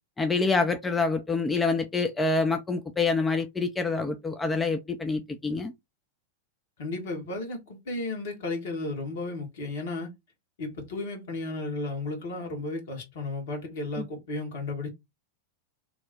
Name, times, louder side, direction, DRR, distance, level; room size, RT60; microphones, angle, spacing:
voice 1, 0.2-5.7 14.0-14.1, left 3 dB, 10° left, 0.4 m, -26 dB
voice 2, 6.8-10.1 10.6-14.9, left 2 dB, 55° left, 1.3 m, -34 dB
2.9 x 2.1 x 4.0 m
figure-of-eight pair, 90°, 0 cm